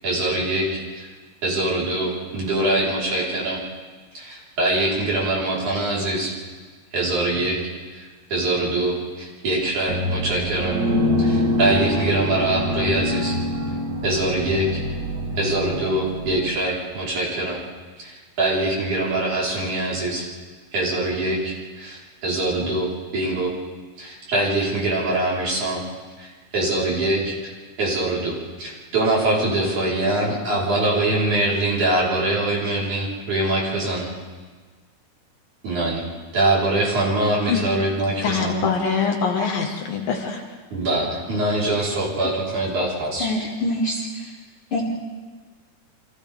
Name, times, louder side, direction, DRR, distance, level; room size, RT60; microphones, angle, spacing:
voice 1, 0.0-1.1 1.4-3.6 4.1-6.3 6.9-7.6 7.9-8.0 8.3-10.8 11.2-13.4 14.0-14.8 15.4-17.6 18.0-20.3 20.7-23.5 24.0-25.8 26.2-26.3 26.5-27.5 27.8-34.1 35.6-36.0 36.3-38.6 40.7-43.3, right 2 dB, 50° right, -6 dB, 5.6 m, -23 dB
sound 1, 9.9-16.4, left 1 dB, 30° right, 2.1 m, -25 dB
voice 2, 38.2-40.4, left 6 dB, 65° left, 1 dB, 3.2 m, -23 dB
voice 3, 43.2-44.0 44.7-44.9, left 1 dB, 35° left, -4 dB, 3.0 m, -24 dB
29.0 x 26.0 x 3.6 m, 1.4 s
omnidirectional pair, 4.6 m